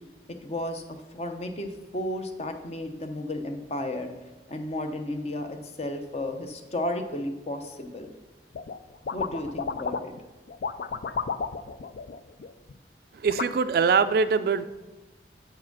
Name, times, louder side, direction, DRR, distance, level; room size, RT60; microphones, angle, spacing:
voice 1, 0.4-4.1 4.5-8.1 9.1-10.1, left 1 dB, 35° left, 6 dB, 0.7 m, -33 dB
sound 1, 8.5-8.8 9.0-10.2 10.5-12.7 13.3-13.5, left 5 dB, 65° left, 0.4 m, -32 dB
voice 2, 13.2-14.6, right 5 dB, 55° right, 13 dB, 0.3 m, -22 dB
7.9 x 4.8 x 5.9 m, 1.1 s
head